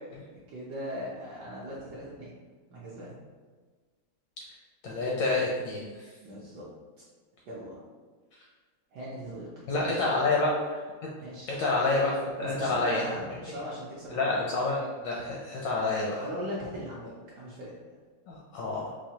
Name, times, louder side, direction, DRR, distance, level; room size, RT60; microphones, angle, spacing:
voice 1, 0.5-2.3 2.7-3.1 6.2-6.6 7.5-7.8 8.9-10.2 11.2-11.5 12.4-14.3 16.2-17.7, equal, 70° right, -6 dB, 1.0 m, -39 dB
voice 2, 4.8-5.9 9.7-10.8 11.6-13.1 14.1-16.2 18.3-18.9, left 3 dB, 75° left, -3 dB, 1.0 m, -28 dB
4.7 x 2.1 x 2.7 m, 1.4 s
omnidirectional pair, 2.4 m